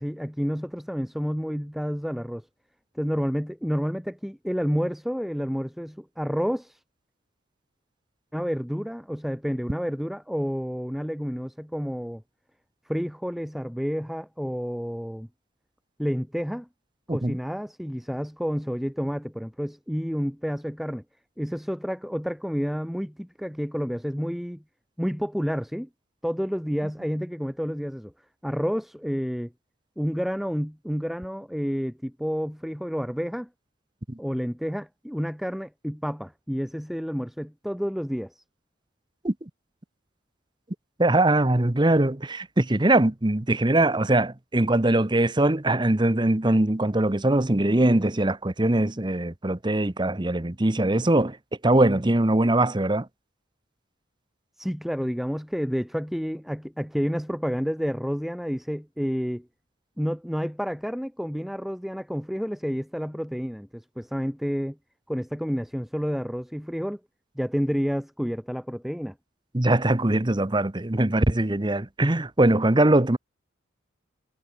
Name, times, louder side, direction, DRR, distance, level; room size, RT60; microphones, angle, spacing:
voice 1, 0.0-2.5 2.9-6.8 8.3-12.2 12.9-15.3 16.0-16.7 17.1-21.0 21.4-24.6 25.0-25.9 26.2-28.1 28.4-29.5 30.0-33.5 34.2-38.4 54.6-59.5 60.0-64.8 65.1-67.0 67.3-69.1, equal, ahead, 6.7 m, -29 dB
voice 2, 41.0-51.4 51.6-53.1 69.5-73.2, right 1 dB, 20° right, 0.9 m, -22 dB
head